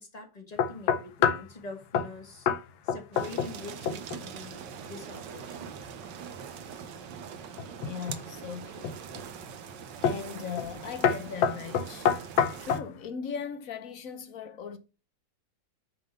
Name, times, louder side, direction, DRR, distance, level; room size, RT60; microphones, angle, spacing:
voice 1, 0.0-2.5 2.8-5.7, left 3 dB, 20° left, 1.4 m, -45 dB
sound 1, 0.6-1.5 1.9-2.1 2.5-2.6 2.9-3.6 3.9-4.2 7.6-8.2 8.8-9.2 10.0-10.3 10.6-10.8 11.0-12.9, left 7 dB, 80° left, 1.6 m, -27 dB
sound 2, 3.1-12.8, right 7 dB, 70° right, 1.4 m, -43 dB
voice 2, 7.8-8.9 10.0-12.3 12.6-14.8, left 6 dB, 55° left, 1.2 m, -38 dB
8.8 x 3.7 x 5.4 m
omnidirectional pair, 2.1 m